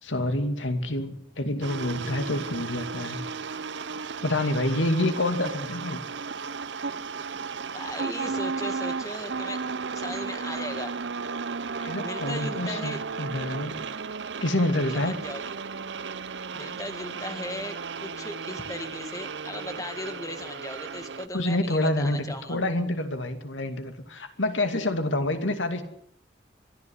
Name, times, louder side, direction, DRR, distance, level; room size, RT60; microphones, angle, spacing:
voice 1, 0.0-3.2 4.2-6.0 11.8-13.8 14.4-15.2 21.3-25.8, left 1 dB, 90° left, 8 dB, 2.6 m, -27 dB
sound 1, 1.6-21.3, right 5 dB, 70° right, 0.8 m, -34 dB
voice 2, 7.7-9.6 9.9-11.0 12.0-13.0 14.9-15.4 16.5-22.6, left 1 dB, 20° left, 8 dB, 1.8 m, -37 dB
23.0 x 14.0 x 9.8 m, 0.70 s
head